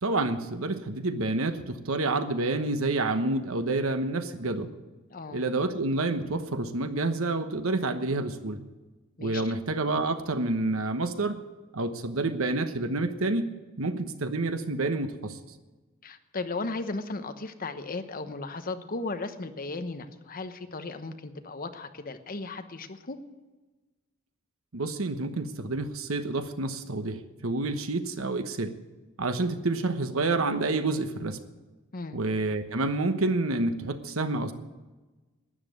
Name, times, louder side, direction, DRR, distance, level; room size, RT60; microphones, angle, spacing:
voice 1, 0.0-4.7 5.3-8.6 9.2-11.4 11.7-13.5 13.8-15.4 24.7-28.7 29.2-31.4 32.1-34.5, right 2 dB, 75° right, 9 dB, 1.1 m, -28 dB
voice 2, 5.1-5.4 9.2-9.5 16.0-23.2 31.9-32.2, left 3 dB, 45° left, 9 dB, 1.0 m, -36 dB
12.5 x 9.8 x 8.1 m, 1.2 s
head